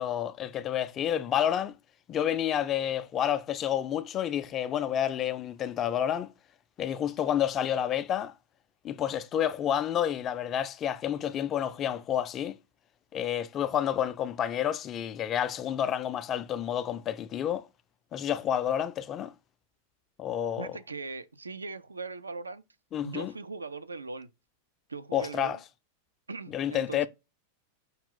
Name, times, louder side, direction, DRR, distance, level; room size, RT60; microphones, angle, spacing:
voice 1, 0.0-1.7 2.1-6.3 6.8-8.3 8.8-12.6 13.1-17.7 18.1-19.3 20.2-20.8 22.9-23.3 25.1-25.6 26.5-27.1, left 10 dB, 30° left, 0.4 m, -29 dB
voice 2, 20.6-22.6 23.0-24.3 24.9-25.6 26.3-27.1, right 4 dB, 80° right, 0.4 m, -39 dB
5.5 x 2.3 x 3.7 m
figure-of-eight pair, 90°, 0 cm